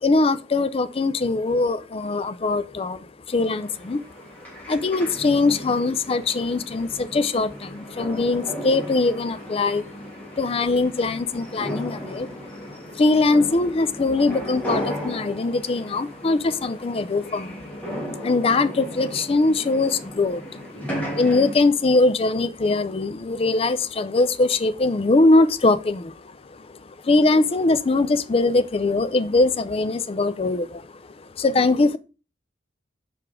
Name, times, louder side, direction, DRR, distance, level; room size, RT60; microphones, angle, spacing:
voice 1, 0.0-4.0 4.7-9.9 10.2-20.6 21.1-32.0, left 3 dB, 30° left, 0.4 m, -22 dB
sound 1, 3.4-21.6, equal, 10° left, 2.1 m, -35 dB
6.0 x 5.0 x 3.6 m
head